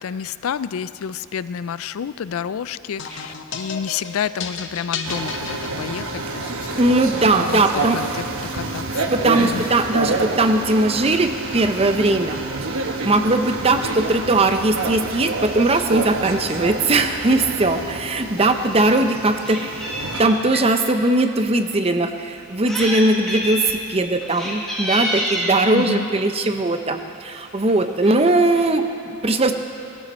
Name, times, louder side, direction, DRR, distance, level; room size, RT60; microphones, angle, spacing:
voice 1, 0.0-7.0 7.5-9.0 9.4-9.7 25.7-26.1, left 7 dB, 75° left, 15 dB, 0.4 m, -29 dB
sound 1, 3.0-6.4, left 5 dB, 55° left, 0.9 m, -33 dB
sound 2, 5.0-20.2, right 3 dB, 75° right, 1.1 m, -28 dB
voice 2, 6.8-8.0 9.1-12.4 13.0-19.7 20.2-29.5, right 2 dB, 25° right, 7 dB, 0.6 m, -19 dB
Meow, 18.4-18.5 18.9-20.7 21.4-21.5 22.4-23.0 23.3-23.7 24.2-25.7 26.6-26.9 27.3-27.4 27.6-27.7 28.0-28.7, equal, ahead, 1.9 m, -28 dB
17.0 x 14.5 x 4.3 m, 2.6 s
head